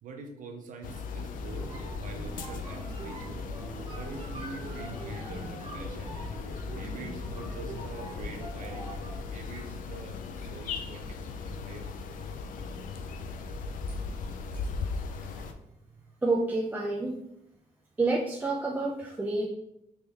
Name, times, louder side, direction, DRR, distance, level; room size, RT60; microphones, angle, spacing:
voice 1, 0.0-3.5 3.9-6.2 6.7-11.9, right 4 dB, 75° right, 4 dB, 0.6 m, -45 dB
sound 1, 0.8-15.5, left 4 dB, 80° left, 0.4 m, -38 dB
sound 2, 1.5-9.3, equal, 40° right, 0.8 m, -41 dB
voice 2, 16.2-17.2 18.0-19.5, right 2 dB, 10° right, -3 dB, 0.4 m, -28 dB
3.6 x 3.2 x 2.8 m, 0.81 s
cardioid pair, 130°, 14 cm